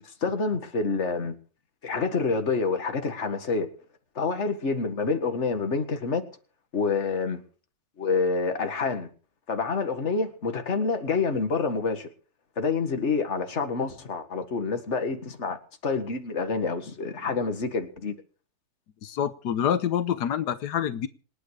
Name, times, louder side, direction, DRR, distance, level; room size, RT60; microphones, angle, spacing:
voice 1, 0.2-1.4 1.8-3.7 4.2-6.2 6.7-7.4 8.0-9.1 9.5-12.1 12.6-15.6 15.8-18.1, left 4 dB, 45° left, 2.0 m, -27 dB
voice 2, 19.0-21.1, left 9 dB, 85° left, 1.5 m, -27 dB
27.0 x 9.4 x 4.9 m
omnidirectional pair, 1.7 m